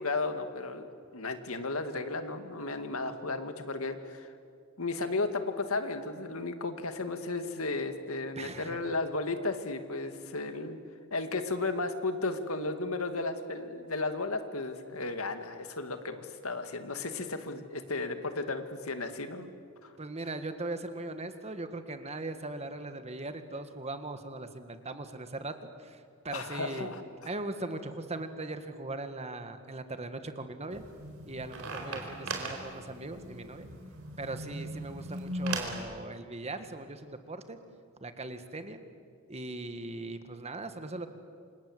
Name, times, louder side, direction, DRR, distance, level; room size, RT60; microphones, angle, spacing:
voice 1, 0.0-4.3 4.8-10.8 11.1-19.5 19.8-19.9 26.3-27.0, left 3 dB, 75° left, 8 dB, 2.1 m, -34 dB
voice 2, 8.3-8.8 20.0-26.9 27.2-30.8 31.3-33.7 34.2-37.6 38.0-38.8 39.3-41.1, right 2 dB, 30° right, 8 dB, 1.7 m, -39 dB
sound 1, 30.7-35.8, right 1 dB, 75° right, 4.3 m, -38 dB
28.5 x 26.5 x 7.9 m, 2.2 s
head